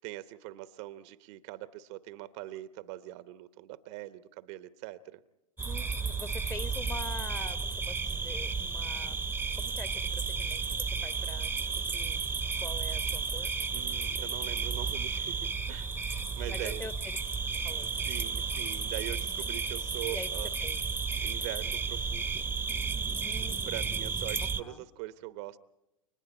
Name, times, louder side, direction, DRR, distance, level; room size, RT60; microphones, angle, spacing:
voice 1, 0.0-5.2 13.7-16.9 18.0-20.6 21.2-22.5 23.6-25.6, right 15 dB, 50° right, 0.9 m, -42 dB
voice 2, 5.6-12.2 12.6-13.5 16.5-16.9 17.6-18.1 19.2-19.6 20.1-20.3 20.6-20.8 23.2-23.5 23.9-24.2 24.5-24.8, left 3 dB, 15° left, 1.1 m, -45 dB
sound 1, 5.6-24.6, right 5 dB, 10° right, 0.9 m, -33 dB
30.0 x 24.5 x 4.3 m
figure-of-eight pair, 95°, 18 cm